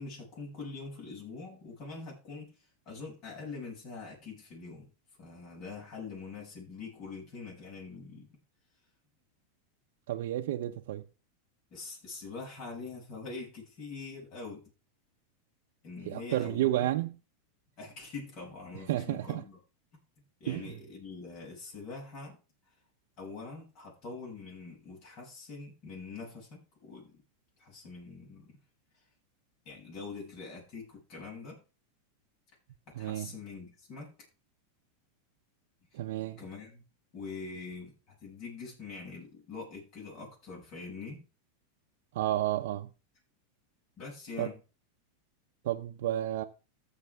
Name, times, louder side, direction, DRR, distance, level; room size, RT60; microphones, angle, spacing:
voice 1, 0.0-2.5 2.9-4.9 5.2-8.3 11.7-14.6 15.8-16.9 17.8-19.6 20.4-22.4 23.2-27.2 27.6-28.5 29.7-31.6 32.9-34.1 35.9-36.0 36.4-36.8 37.1-41.2 44.0-44.6, left 4 dB, 40° left, 7.3 m, -44 dB
voice 2, 10.1-11.0 16.1-17.2 18.9-19.4 20.5-20.8 32.9-33.3 35.9-36.4 42.1-42.9 44.4-44.5 45.6-46.4, right 14 dB, 70° right, 0.7 m, -31 dB
15.0 x 6.6 x 3.5 m
supercardioid pair, 135°, 0 cm